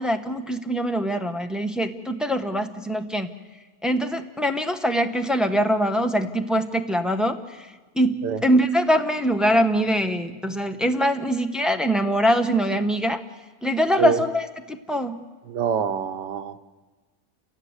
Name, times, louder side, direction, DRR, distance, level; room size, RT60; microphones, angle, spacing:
voice 1, 0.0-3.3 3.8-7.7 7.9-13.2 13.6-15.2, equal, ahead, 6 dB, 0.9 m, -23 dB
voice 2, 15.5-16.6, right 7 dB, 85° right, 9 dB, 1.6 m, -25 dB
29.0 x 17.5 x 8.1 m, 1.3 s
omnidirectional pair, 1.8 m